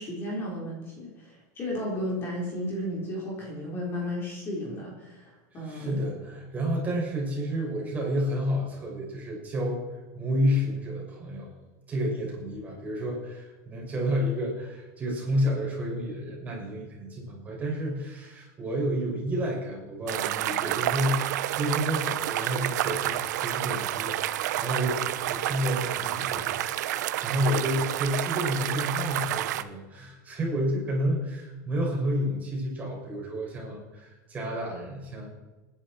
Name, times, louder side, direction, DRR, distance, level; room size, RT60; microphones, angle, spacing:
voice 1, 0.0-6.0, left 1 dB, 25° left, -3 dB, 4.1 m, -34 dB
voice 2, 5.5-9.8 10.1-11.5 11.9-35.3, equal, 15° right, -3 dB, 5.9 m, -30 dB
sound 1, 20.1-29.6, right 13 dB, 85° right, 0.9 m, -29 dB
28.5 x 10.5 x 4.5 m, 1.2 s
supercardioid pair, 165°, 9 cm